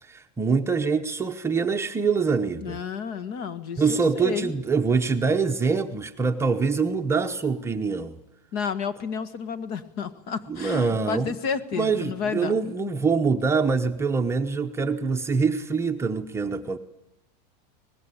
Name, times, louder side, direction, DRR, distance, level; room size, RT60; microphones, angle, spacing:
voice 1, 0.0-2.8 3.8-8.2 10.5-11.3 11.8-16.8, right 5 dB, 10° right, 4 dB, 0.9 m, -24 dB
voice 2, 2.6-4.5 8.5-12.5, left 6 dB, 45° left, 12 dB, 1.9 m, -31 dB
25.0 x 20.0 x 8.5 m, 0.90 s
supercardioid pair, 150°, 21 cm